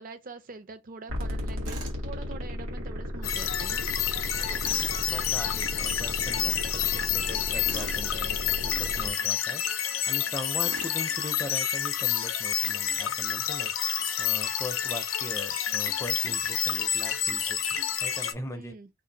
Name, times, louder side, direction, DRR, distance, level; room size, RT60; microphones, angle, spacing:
voice 1, 0.0-3.9 18.5-18.9, right 3 dB, 45° right, 0.5 m, -44 dB
sound 1, 1.1-9.1, equal, 90° right, 1.1 m, -35 dB
Tools, 1.6-2.0 4.6-5.0 7.6-8.0 10.6-11.0, right 2 dB, 60° right, 1.2 m, -40 dB
sound 2, 3.2-18.3, left 9 dB, 90° left, 0.5 m, -29 dB
voice 2, 4.5-18.7, left 1 dB, 15° left, 0.5 m, -40 dB
2.6 x 2.5 x 3.8 m
head